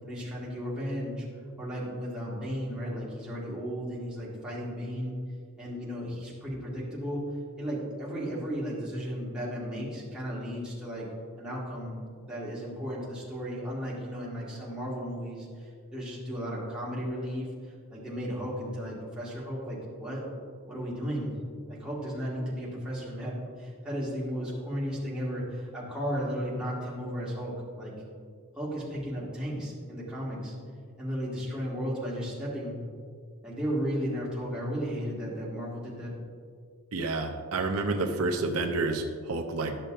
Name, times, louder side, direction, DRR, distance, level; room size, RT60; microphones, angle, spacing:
voice 1, 0.0-1.3 1.6-5.2 5.6-7.2 7.6-11.1 11.4-17.5 17.9-20.3 20.7-21.3 21.7-27.9 28.6-30.5 31.0-32.8 33.4-36.1, equal, 5° right, -8 dB, 1.8 m, -34 dB
voice 2, 36.9-39.8, right 3 dB, 80° right, 3 dB, 0.6 m, -29 dB
12.5 x 6.6 x 2.5 m, 2.1 s
head